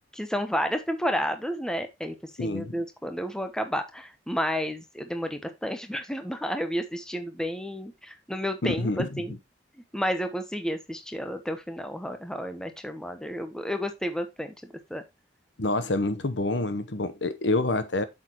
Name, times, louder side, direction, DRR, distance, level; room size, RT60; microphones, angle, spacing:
voice 1, 0.1-9.4 9.8-15.0, equal, 5° left, 1.0 m, -31 dB
voice 2, 2.4-2.8 8.6-9.1 15.6-18.0, left 2 dB, 75° left, 1.0 m, -27 dB
8.1 x 6.7 x 3.0 m
head